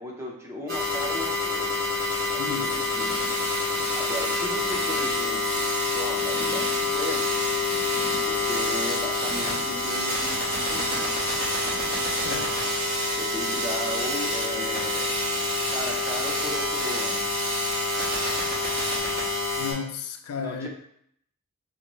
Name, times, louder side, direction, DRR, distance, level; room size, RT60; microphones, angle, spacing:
voice 1, 0.0-1.8 2.3-3.2 3.9-7.4 8.2-11.1 13.2-15.1 15.7-17.3 20.4-20.7, left 1 dB, 10° right, 0.7 m, -36 dB
sound 1, 0.7-19.7, left 2 dB, 45° right, 1.5 m, -28 dB
sound 2, 2.1-19.0, right 1 dB, 60° right, 1.2 m, -33 dB
voice 2, 2.4-2.8 12.1-12.7 19.6-20.7, left 6 dB, 75° left, 0.4 m, -34 dB
4.2 x 2.6 x 3.0 m
head